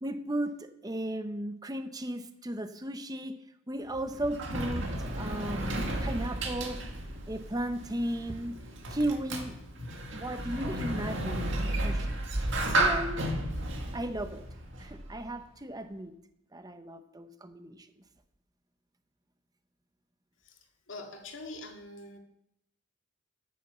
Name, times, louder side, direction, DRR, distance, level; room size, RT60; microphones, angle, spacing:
voice 1, 0.0-3.4 3.7-6.8 7.3-8.5 8.9-9.6 10.1-13.2 13.9-14.4 14.8-16.1 16.5-17.9, right 1 dB, 20° right, 9 dB, 0.9 m, -35 dB
Sliding door, 3.8-15.3, right 1 dB, 70° right, 2.0 m, -33 dB
voice 2, 20.9-22.2, left 2 dB, 75° left, 2 dB, 2.2 m, -43 dB
10.0 x 9.4 x 6.8 m, 0.76 s
head